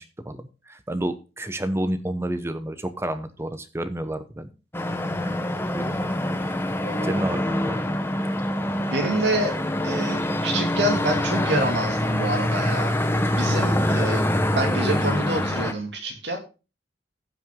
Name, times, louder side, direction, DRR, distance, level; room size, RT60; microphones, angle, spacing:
voice 1, 0.0-4.5 5.2-5.3 5.7-6.0 7.0-7.8, right 1 dB, 15° right, 9 dB, 0.9 m, -30 dB
sound 1, 4.7-15.7, left 1 dB, 15° left, 0.9 m, -25 dB
voice 2, 6.8-7.3 8.9-9.5 9.8-12.9 13.3-14.2 14.5-16.4, right 1 dB, 65° right, 2 dB, 2.8 m, -27 dB
14.5 x 5.9 x 3.8 m, 0.31 s
head